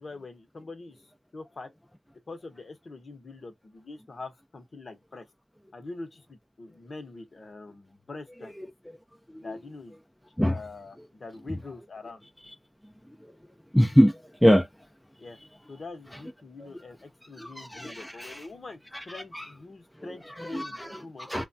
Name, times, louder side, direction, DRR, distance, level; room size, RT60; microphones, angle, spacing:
voice 1, 0.0-1.7 2.3-5.3 5.7-8.5 9.4-10.0 10.4-12.2 15.2-15.4 15.7-18.8 19.1-21.3, left 3 dB, 50° left, 0.9 m, -43 dB
voice 2, 13.7-14.7 16.6-16.7 17.4-18.4 18.9-19.4 20.4-21.5, equal, 5° left, 0.5 m, -24 dB
3.1 x 2.2 x 2.6 m
cardioid pair, 75°, 0 cm